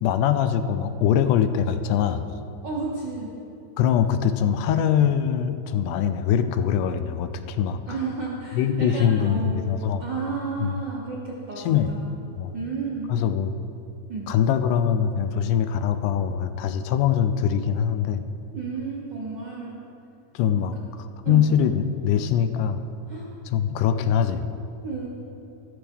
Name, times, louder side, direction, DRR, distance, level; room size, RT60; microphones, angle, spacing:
voice 1, 0.0-2.3 3.8-7.8 8.6-10.0 10.6-10.7 11.7-11.9 12.4-12.5 13.1-13.5 14.3-18.2 20.3-20.8 21.3-22.8 23.5-24.5, left 8 dB, 80° left, 10 dB, 2.0 m, -22 dB
voice 2, 2.6-3.3 7.9-9.6 10.0-12.0 12.5-13.2 14.1-14.3 18.5-19.8 21.2-21.4 23.1-23.3 24.8-25.1, right 4 dB, 60° right, -4 dB, 1.2 m, -32 dB
13.5 x 13.0 x 3.6 m, 2.6 s
omnidirectional pair, 3.7 m